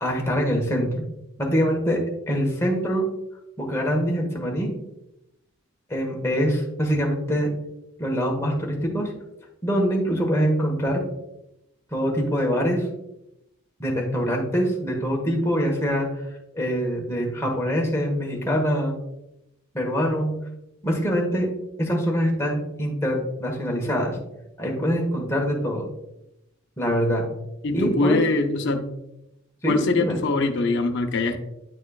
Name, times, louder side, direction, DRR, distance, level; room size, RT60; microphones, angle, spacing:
voice 1, 0.0-1.0 1.4-2.0 2.3-3.1 3.6-4.7 5.9-7.5 8.0-9.1 9.6-11.0 11.9-12.9 13.8-16.1 16.5-18.9 19.7-20.3 20.8-21.5 21.8-24.2 24.6-25.9 26.8-27.2 27.7-28.2 29.6-30.2, equal, 15° left, -1 dB, 1.3 m, -24 dB
voice 2, 27.6-28.8 29.6-31.4, left 3 dB, 55° left, 5 dB, 0.7 m, -23 dB
9.8 x 4.3 x 2.4 m, 0.86 s
head